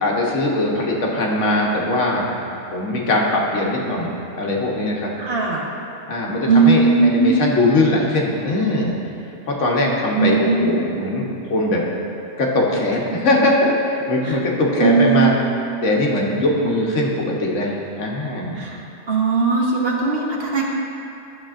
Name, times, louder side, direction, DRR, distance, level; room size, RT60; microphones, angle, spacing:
voice 1, 0.0-2.4 2.7-5.1 6.1-8.9 9.5-11.8 12.4-15.4 15.8-18.6, left 2 dB, 70° left, -2 dB, 1.3 m, -20 dB
voice 2, 5.2-5.6 6.4-7.4 10.2-10.8 14.2-14.4 14.8-15.3 18.6-18.8 19.1-20.6, right 4 dB, 55° right, -2 dB, 1.0 m, -18 dB
11.5 x 7.2 x 2.5 m, 2.8 s
omnidirectional pair, 1.3 m